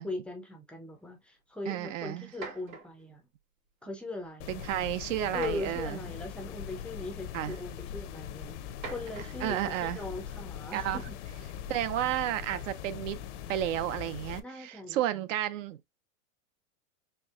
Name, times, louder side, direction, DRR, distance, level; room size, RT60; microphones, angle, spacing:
voice 1, 0.0-3.2 3.8-4.6 5.3-11.2 14.4-15.0, left 2 dB, 5° left, 0.4 m, -40 dB
voice 2, 1.7-2.3 4.5-6.0 7.3-7.6 9.4-10.0 10.7-11.0 11.7-13.2 13.5-16.0, right 13 dB, 65° right, 0.6 m, -32 dB
sound 1, 1.7-1.8 2.3-3.1 4.0-4.3 5.3-6.0 7.2-7.3 8.6-10.1 12.4-12.9, right 4 dB, 85° right, 2.2 m, -46 dB
sound 2, 4.4-14.4, left 9 dB, 60° left, 0.6 m, -41 dB
4.4 x 2.8 x 2.3 m
supercardioid pair, 145°, 41 cm